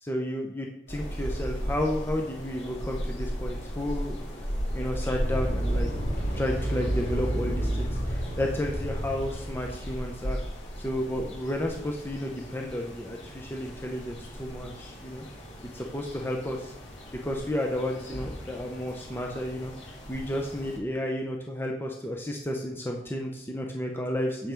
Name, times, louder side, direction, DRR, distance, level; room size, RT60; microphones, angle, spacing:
voice 1, 0.0-4.2 4.7-5.9 6.3-10.4 10.8-15.2 15.7-16.7 17.2-19.7 20.1-24.5, left 1 dB, 10° left, 1 dB, 0.6 m, -32 dB
sound 1, 0.9-20.8, equal, 85° left, 2.0 m, -36 dB
sound 2, 4.9-10.1, right 1 dB, 50° left, 2.6 m, -31 dB
6.8 x 5.6 x 4.5 m, 0.85 s
head